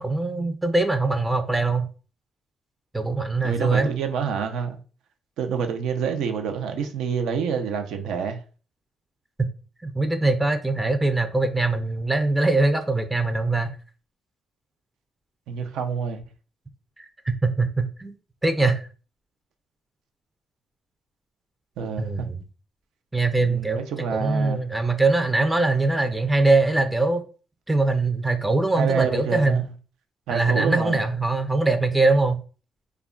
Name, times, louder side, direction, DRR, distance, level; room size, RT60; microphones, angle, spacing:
voice 1, 0.0-1.9 2.9-3.9 9.4-9.5 9.8-13.7 17.0-18.1 18.4-18.9 22.0-22.4 23.1-23.8 24.1-27.2 27.7-29.6 30.3-32.4, right 3 dB, 15° right, 0.4 m, -22 dB
voice 2, 3.4-4.8 5.4-8.4 15.5-16.2 21.8-22.3 23.4-24.6 28.8-29.7 30.3-31.0, right 6 dB, 85° right, 0.5 m, -27 dB
2.3 x 2.1 x 3.6 m
cardioid pair, 90°, 0 cm